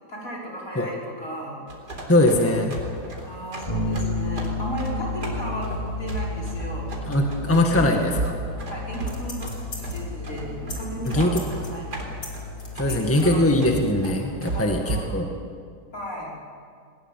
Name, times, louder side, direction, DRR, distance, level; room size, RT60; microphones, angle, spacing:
voice 1, 0.1-1.6 3.2-6.9 7.7-8.2 8.5-12.2 12.8-13.4 14.5-15.2 15.9-16.3, right 1 dB, 55° left, -3 dB, 5.8 m, -35 dB
sound 1, 1.7-15.1, right 2 dB, 85° right, 4.4 m, -34 dB
voice 2, 2.1-2.8 7.1-8.3 11.1-11.4 12.8-15.3, left 1 dB, 10° left, 2 dB, 1.8 m, -21 dB
Bass guitar, 3.7-13.5, left 3 dB, 30° left, 3.0 m, -33 dB
sound 2, 8.9-10.2 10.7-10.8 11.0-13.2 13.6-13.7, left 2 dB, 85° left, 4.6 m, -39 dB
21.0 x 20.5 x 9.2 m, 2.2 s
omnidirectional pair, 1.7 m